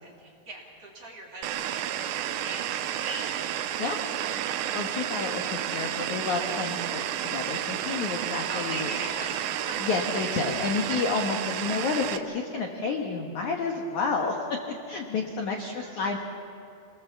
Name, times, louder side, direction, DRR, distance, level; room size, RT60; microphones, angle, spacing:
voice 1, 0.0-4.2 8.5-9.4 9.7-9.8 10.3-10.4 15.6-15.9, right 2 dB, 40° right, -3 dB, 3.3 m, -41 dB
sound 1, 1.4-12.2, right 11 dB, 85° right, 3.0 m, -31 dB
voice 2, 4.7-8.9 9.8-14.6 14.9-16.2, left 4 dB, 65° left, 2 dB, 2.0 m, -30 dB
27.5 x 19.5 x 7.3 m, 2.6 s
omnidirectional pair, 5.2 m